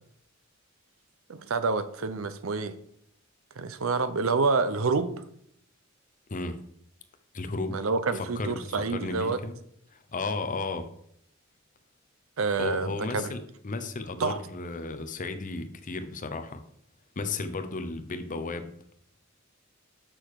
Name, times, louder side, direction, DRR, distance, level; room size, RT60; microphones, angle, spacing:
voice 1, 1.3-2.7 3.6-5.1 7.7-9.4 12.4-13.3 14.2-14.4, right 4 dB, 85° right, 12 dB, 0.7 m, -27 dB
voice 2, 7.3-7.8 8.1-9.5 9.9-10.9 12.6-16.6 17.2-18.8, left 3 dB, 40° left, 9 dB, 0.7 m, -34 dB
6.7 x 6.1 x 4.8 m, 0.68 s
head